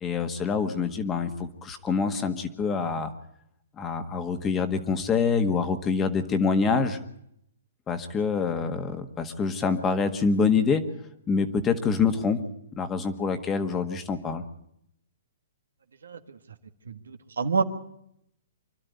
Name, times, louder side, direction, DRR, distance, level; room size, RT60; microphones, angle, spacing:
voice 1, 0.0-3.1 3.8-7.0 7.9-10.8 11.3-12.4 12.8-14.4, left 5 dB, 20° left, 8 dB, 1.6 m, -26 dB
voice 2, 16.0-16.4 16.9-17.6, right 5 dB, 85° right, 8 dB, 1.6 m, -28 dB
25.0 x 12.0 x 9.5 m, 0.74 s
hypercardioid pair, 140°, 0 cm